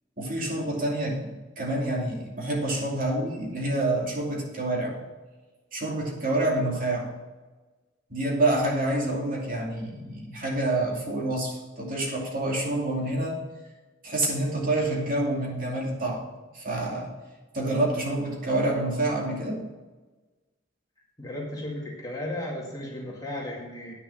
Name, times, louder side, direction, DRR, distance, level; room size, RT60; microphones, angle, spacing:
voice 1, 0.2-5.0 5.7-7.1 8.1-13.4 14.0-16.3 16.5-17.1 17.5-19.7, right 1 dB, 50° right, -2 dB, 2.5 m, -27 dB
voice 2, 21.2-23.9, left 1 dB, 20° left, -3 dB, 2.1 m, -35 dB
9.6 x 6.6 x 6.3 m, 1.2 s
head